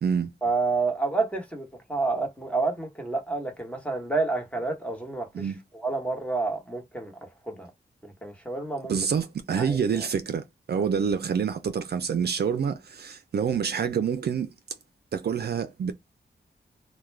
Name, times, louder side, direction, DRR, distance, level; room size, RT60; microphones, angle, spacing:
voice 1, 0.4-5.4 5.8-7.1 7.5-7.7 8.2-8.9 9.6-10.0, right 3 dB, 5° left, 1.1 m, -29 dB
voice 2, 8.9-14.5 15.1-15.9, right 7 dB, 65° right, 0.4 m, -27 dB
2.3 x 2.2 x 3.2 m
cardioid pair, 55°, 18 cm